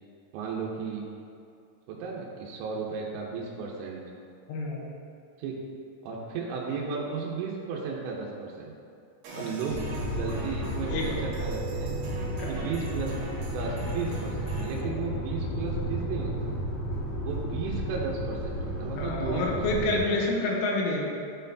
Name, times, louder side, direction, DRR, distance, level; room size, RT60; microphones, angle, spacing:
voice 1, 0.3-1.1 1.9-4.0 5.4-5.6 6.0-8.7 9.3-9.8 10.1-11.9 12.5-13.2 13.5-16.5 17.2-20.2, right 5 dB, 85° right, -3 dB, 3.2 m, -34 dB
voice 2, 4.5-4.8 9.3-9.4 10.9-11.1 12.4-12.6 14.9-15.0 19.0-21.0, left 2 dB, 85° left, -2 dB, 3.3 m, -28 dB
sound 1, 9.2-14.8, right 3 dB, 65° right, 3.2 m, -41 dB
sound 2, 9.7-20.0, equal, 60° left, 2.7 m, -33 dB
11.5 x 4.3 x 2.6 m, 2.4 s
omnidirectional pair, 5.6 m